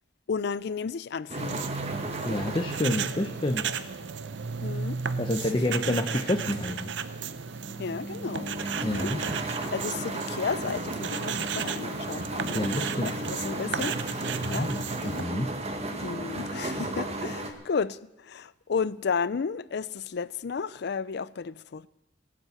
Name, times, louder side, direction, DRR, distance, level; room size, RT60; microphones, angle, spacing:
voice 1, 0.3-1.7 4.6-5.0 5.4-6.0 7.8-8.6 8.9-9.1 9.7-12.6 13.0-14.7 15.0-15.3 16.0-21.9, left 5 dB, 65° left, 0.5 m, -33 dB
sound 1, 1.3-17.5, right 1 dB, 35° right, 1.6 m, -35 dB
sound 2, 1.3-15.2, right 6 dB, 70° right, 0.7 m, -34 dB
voice 2, 2.2-3.7 5.2-6.9 8.8-9.2 12.5-13.2 14.4-14.8 15.0-15.5, left 1 dB, 25° left, 0.9 m, -28 dB
18.5 x 8.6 x 8.0 m
head